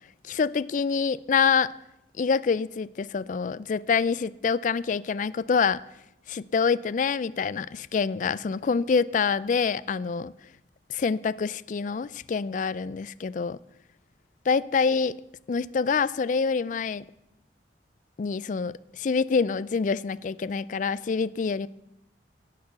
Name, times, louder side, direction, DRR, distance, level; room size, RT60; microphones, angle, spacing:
voice 1, 0.3-1.7 2.2-5.8 6.3-10.3 10.9-13.6 14.5-15.1 15.5-17.0 18.2-21.7, left 5 dB, 45° left, 18 dB, 0.3 m, -26 dB
17.0 x 6.8 x 6.9 m, 0.86 s
head